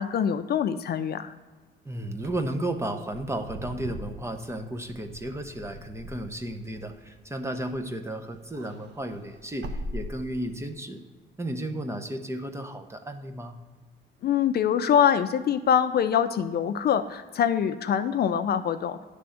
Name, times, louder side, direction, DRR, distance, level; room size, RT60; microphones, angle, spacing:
voice 1, 0.0-1.3 14.2-19.0, left 8 dB, 55° left, 9 dB, 0.4 m, -24 dB
voice 2, 1.8-11.0 11.4-13.6, right 1 dB, 15° right, 6 dB, 0.7 m, -33 dB
Wind / Car, 2.2-7.9 8.3-10.7, equal, 60° right, 0.8 m, -41 dB
9.9 x 3.4 x 6.4 m, 1.4 s
cardioid pair, 90°, 20 cm